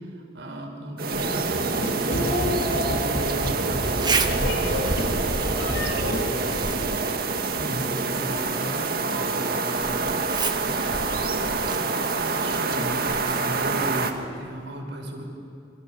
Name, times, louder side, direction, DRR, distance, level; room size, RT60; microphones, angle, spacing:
voice 1, 0.0-4.9 7.5-7.9 12.2-15.2, right 1 dB, 75° right, 1 dB, 5.5 m, -35 dB
sound 1, 1.0-14.1, right 3 dB, 55° right, 1.9 m, -26 dB
Zipper (clothing), 1.1-14.7, right 4 dB, 25° right, 1.4 m, -35 dB
sound 2, 1.2-6.2, left 1 dB, 85° left, 4.8 m, -30 dB
voice 2, 4.3-4.9 5.4-7.3 7.8-11.6, equal, 25° left, -2 dB, 7.5 m, -38 dB
29.0 x 26.5 x 6.8 m, 2.5 s
head